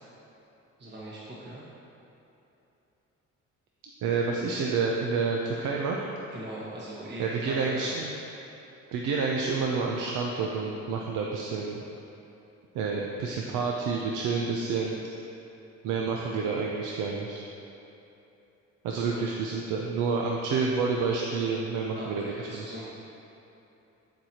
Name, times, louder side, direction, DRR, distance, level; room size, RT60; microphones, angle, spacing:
voice 1, 0.8-1.6 6.3-7.9 18.9-19.2 21.9-22.9, right 1 dB, 35° right, -6 dB, 1.3 m, -41 dB
voice 2, 4.0-6.1 7.2-8.1 8.9-11.8 12.7-14.9 15.8-17.4 18.8-22.6, right 4 dB, 90° right, -1 dB, 0.6 m, -29 dB
12.5 x 4.6 x 2.9 m, 3.0 s
cardioid pair, 90°, 30 cm